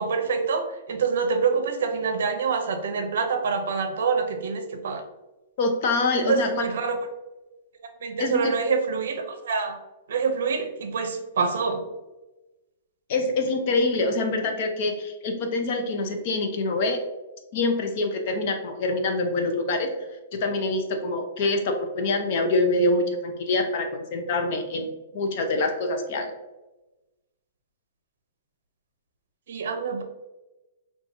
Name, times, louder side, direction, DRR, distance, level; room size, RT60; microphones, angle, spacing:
voice 1, 0.0-5.0 6.2-7.0 8.0-9.8 10.1-11.8 29.5-30.0, right 5 dB, 65° right, 5 dB, 0.6 m, -26 dB
voice 2, 5.6-6.6 8.2-8.5 13.1-17.0 17.5-19.9 20.3-26.3, left 2 dB, 35° left, 4 dB, 0.5 m, -25 dB
5.5 x 2.3 x 2.6 m, 1.1 s
hypercardioid pair, 175°, 0 cm